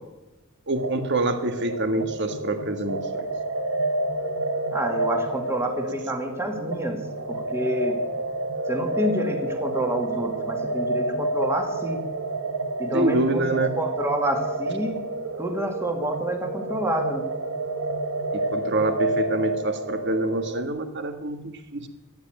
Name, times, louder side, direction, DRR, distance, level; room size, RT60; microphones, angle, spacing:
voice 1, 0.7-3.3 12.9-13.7 18.5-21.9, right 2 dB, 55° right, 8 dB, 1.6 m, -26 dB
sound 1, 0.7-20.7, right 2 dB, 80° right, 1.2 m, -29 dB
voice 2, 4.7-7.0 7.3-8.0 8.7-12.0 12.8-13.5 13.8-15.0 15.4-17.3, equal, 10° right, 4 dB, 2.1 m, -28 dB
14.5 x 9.8 x 9.0 m, 1.1 s
head